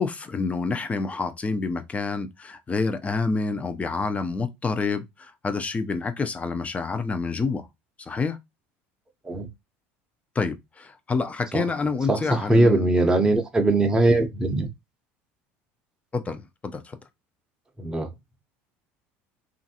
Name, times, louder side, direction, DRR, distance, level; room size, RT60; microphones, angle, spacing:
voice 1, 0.0-7.7 8.0-8.4 10.3-12.9 16.1-17.0, left 4 dB, 20° left, 0.6 m, -28 dB
voice 2, 12.1-14.7 17.8-18.1, right 2 dB, 10° right, 0.8 m, -21 dB
3.0 x 2.5 x 2.8 m
supercardioid pair, 90°, 6 cm